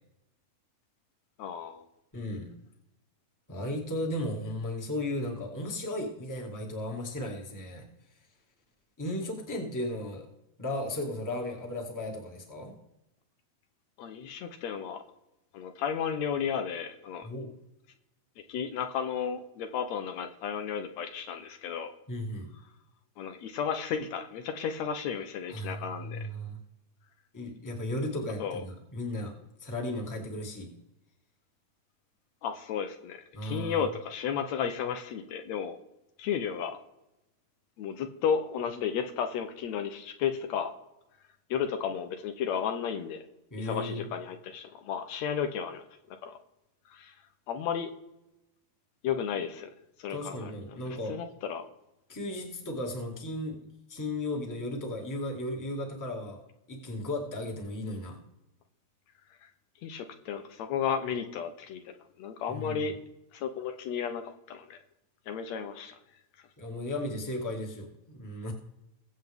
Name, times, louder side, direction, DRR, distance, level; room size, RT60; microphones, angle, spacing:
voice 1, 1.4-1.8 14.0-15.0 15.5-17.3 18.5-21.9 23.2-26.3 28.4-28.6 32.4-35.8 36.2-36.8 37.8-40.7 41.5-43.2 43.6-46.4 46.9-47.2 47.5-47.9 49.0-49.7 50.0-50.5 51.1-51.7 59.4-59.5 59.8-61.9 62.2-63.0 63.3-64.2 64.5-64.8 65.3-66.0, left 7 dB, 75° left, 7 dB, 2.0 m, -33 dB
voice 2, 2.1-2.5 3.5-7.8 9.0-10.3 10.6-12.8 17.2-17.5 22.1-22.5 25.5-26.6 27.3-29.3 29.6-30.7 33.3-33.8 43.5-44.0 50.1-51.1 52.1-53.6 53.9-56.4 56.7-58.2 62.5-62.8 66.6-68.5, left 1 dB, 10° left, 1 dB, 1.5 m, -35 dB
22.0 x 8.0 x 3.5 m, 0.91 s
omnidirectional pair, 3.3 m